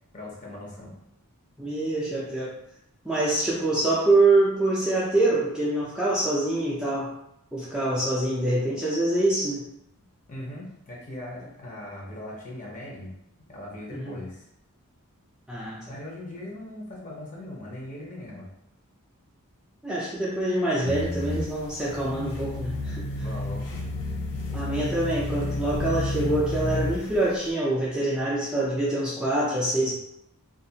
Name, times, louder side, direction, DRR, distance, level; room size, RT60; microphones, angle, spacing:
voice 1, 0.1-1.0 10.3-13.1 13.5-14.5 15.9-18.5 23.2-23.9 24.4-25.2, left 1 dB, 35° left, -4 dB, 0.7 m, -40 dB
voice 2, 1.6-2.5 3.0-7.1 7.5-9.7 13.9-14.2 15.5-15.9 19.8-23.1 24.5-29.9, right 2 dB, 5° right, -8 dB, 0.4 m, -25 dB
sound 1, 20.8-27.3, left 1 dB, 85° left, 0.6 m, -31 dB
2.5 x 2.4 x 2.7 m, 0.80 s
head